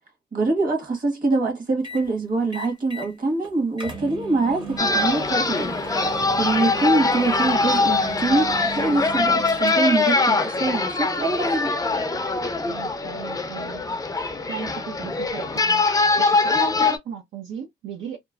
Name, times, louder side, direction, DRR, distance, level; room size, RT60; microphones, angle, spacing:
voice 1, 0.3-5.8 6.1-11.7, right 3 dB, 45° right, 1.4 m, -24 dB
sound 1, 1.8-2.1 2.5-3.1 3.4-3.5 3.8-10.1, right 3 dB, 25° right, 0.8 m, -37 dB
voice 2, 4.5-4.8 12.6-13.8 14.5-15.8 16.2-18.2, right 7 dB, 70° right, 0.8 m, -36 dB
sound 2, 4.8-17.0, left 3 dB, 15° left, 0.5 m, -22 dB
3.0 x 2.1 x 2.3 m
cardioid pair, 90°, 20 cm